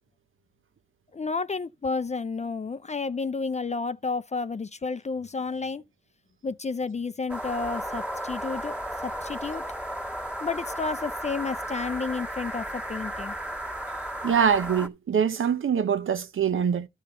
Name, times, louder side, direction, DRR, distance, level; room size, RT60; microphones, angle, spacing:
voice 1, 1.1-5.8 6.4-8.7 9.0-9.6 10.4-13.3, left 4 dB, 35° left, 0.5 m, -31 dB
sound 1, 7.3-14.9, right 1 dB, 5° right, 1.6 m, -34 dB
voice 2, 14.2-16.9, right 7 dB, 70° right, 0.8 m, -24 dB
11.5 x 6.5 x 4.2 m
cardioid pair, 60°, 21 cm